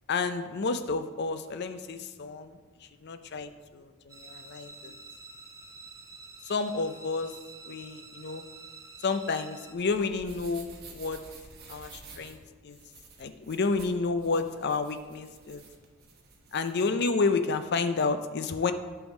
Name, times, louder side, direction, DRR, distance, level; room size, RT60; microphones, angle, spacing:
voice 1, 0.1-4.9 6.4-7.4 7.6-8.5 9.0-11.2 11.7-12.4 12.6-12.8 13.2-15.6 16.5-18.7, left 4 dB, 50° left, 10 dB, 0.5 m, -30 dB
sound 1, 4.1-9.7, right 3 dB, 15° right, 0.7 m, -48 dB
sound 2, 9.7-16.7, right 4 dB, 45° right, 1.1 m, -51 dB
8.9 x 3.5 x 6.4 m, 1.4 s
head